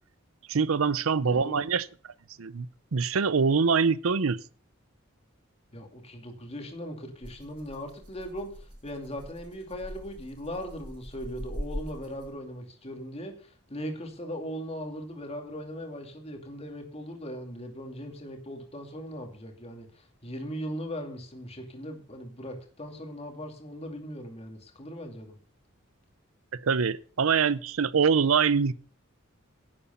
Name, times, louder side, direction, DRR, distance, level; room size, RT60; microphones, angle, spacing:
voice 1, 0.5-1.9 2.4-4.4 26.5-28.7, right 5 dB, 90° right, 0.6 m, -24 dB
voice 2, 1.2-1.6 5.7-25.4, equal, 30° left, 2.6 m, -39 dB
Rattle (instrument), 7.2-12.5, equal, 25° right, 5.6 m, -42 dB
11.0 x 8.5 x 7.0 m
head